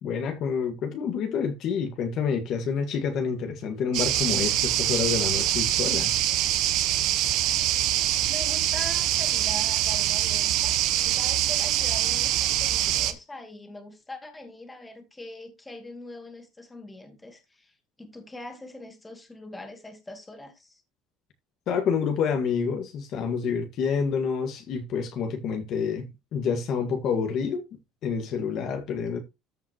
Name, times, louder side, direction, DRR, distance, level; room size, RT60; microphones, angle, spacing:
voice 1, 0.0-6.2 21.7-26.1 26.3-27.6 28.0-29.2, left 6 dB, 45° left, 1.7 m, -28 dB
sound 1, 3.9-13.1, right 12 dB, 60° right, 1.3 m, -24 dB
voice 2, 8.2-10.8 11.0-20.8, left 1 dB, 10° left, 2.3 m, -42 dB
14.0 x 5.6 x 3.0 m
cardioid pair, 150°, 0 cm